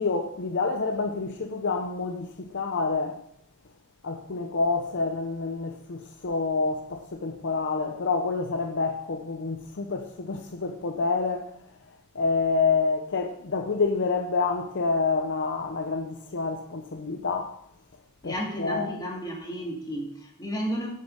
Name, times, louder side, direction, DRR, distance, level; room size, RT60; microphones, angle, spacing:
voice 1, 0.0-3.2 4.0-11.6 12.1-17.6 18.2-19.0, left 4 dB, 55° left, 0.7 m, -28 dB
voice 2, 18.2-20.9, equal, 20° left, 2.2 m, -32 dB
8.5 x 8.1 x 5.3 m
head